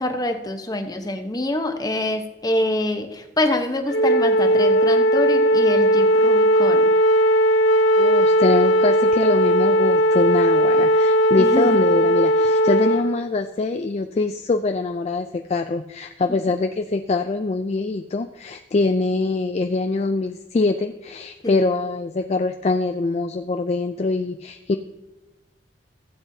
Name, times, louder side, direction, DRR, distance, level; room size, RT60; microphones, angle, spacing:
voice 1, 0.0-6.8 11.4-11.8 21.4-21.6, left 1 dB, 20° left, 6 dB, 0.9 m, -25 dB
Wind instrument woodwind instrument, 3.9-13.1, equal, 75° left, 0.8 m, -17 dB
voice 2, 8.0-24.8, left 3 dB, 35° left, 7 dB, 0.4 m, -23 dB
16.0 x 8.0 x 2.7 m, 1.0 s
head